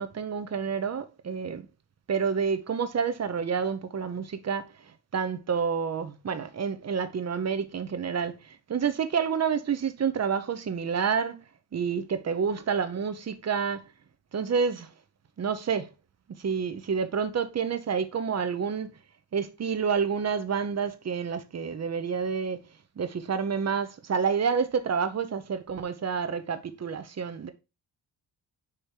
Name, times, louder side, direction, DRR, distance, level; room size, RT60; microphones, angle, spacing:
voice 1, 0.0-1.6 2.1-4.7 5.1-11.4 11.7-13.8 14.3-14.9 15.4-15.9 16.4-18.9 19.3-22.6 23.0-27.5, right 6 dB, 35° right, 0.8 m, -29 dB
5.2 x 5.0 x 4.5 m
wide cardioid pair, 170°, 43 cm